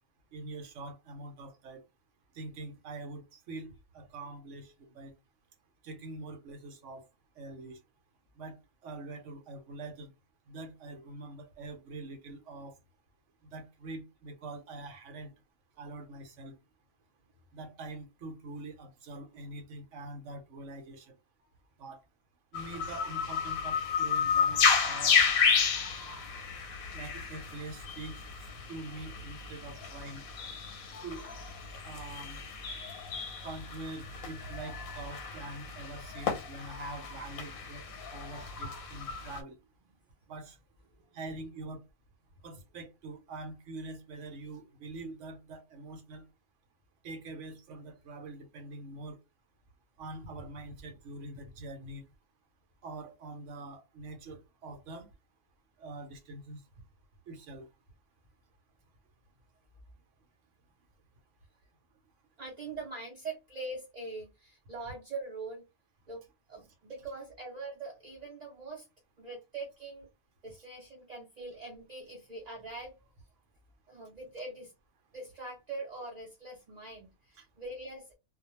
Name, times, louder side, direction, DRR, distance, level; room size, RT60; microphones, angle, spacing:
voice 1, 0.3-1.8 2.3-5.1 5.8-7.0 7.4-7.8 8.4-8.6 8.8-10.1 10.5-12.7 13.5-15.3 15.8-16.6 17.5-21.1 21.8-22.0 22.5-25.2 26.9-28.2 28.7-30.2 31.0-31.3 31.8-32.4 33.4-39.6 40.3-40.6 41.1-41.8 42.4-46.2 47.0-49.2 50.0-52.0 52.8-55.1 55.8-56.6 57.3-57.7 77.4-77.5, right 2 dB, 65° right, 1.0 m, -44 dB
sound 1, 22.5-39.4, left 6 dB, 90° left, 1.1 m, -32 dB
voice 2, 62.4-65.6 66.1-66.2 66.5-68.9 69.2-70.1 70.4-73.0 73.9-74.7 75.1-78.1, right 3 dB, 45° right, 0.5 m, -42 dB
2.3 x 2.2 x 2.9 m
omnidirectional pair, 1.4 m